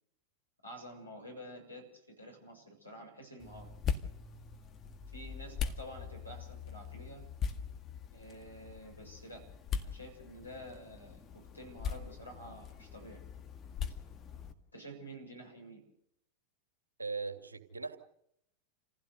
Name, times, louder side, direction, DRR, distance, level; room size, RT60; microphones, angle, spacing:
voice 1, 0.6-3.7 5.1-7.2 8.1-9.5 9.8-11.2 11.5-13.2 14.7-15.8, equal, 85° left, 1 dB, 7.0 m, -49 dB
sound 1, 3.4-14.5, left 7 dB, 25° left, 1.8 m, -41 dB
voice 2, 17.0-18.0, right 4 dB, 75° right, 7 dB, 2.3 m, -39 dB
28.0 x 16.0 x 6.8 m, 0.75 s
figure-of-eight pair, 90°, 0 cm